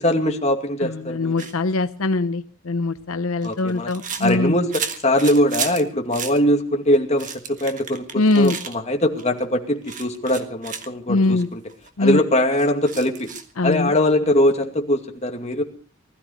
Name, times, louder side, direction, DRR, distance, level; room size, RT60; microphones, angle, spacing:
voice 1, 0.0-1.5 3.4-3.9 4.2-11.6 12.0-13.3 13.6-15.6, left 1 dB, 30° left, 3 dB, 2.4 m, -21 dB
voice 2, 0.8-4.6 8.2-8.6 11.1-11.5 12.0-12.2 13.6-13.9, left 2 dB, 85° left, 10 dB, 0.8 m, -22 dB
sound 1, 1.4-1.5 2.9-5.8 6.1-6.4 6.9-8.7 9.2-9.4 9.8-10.9 11.4-11.5 11.7-11.9 12.5-13.5, right 7 dB, 40° right, 1.6 m, -33 dB
20.0 x 13.5 x 5.0 m, 0.42 s
head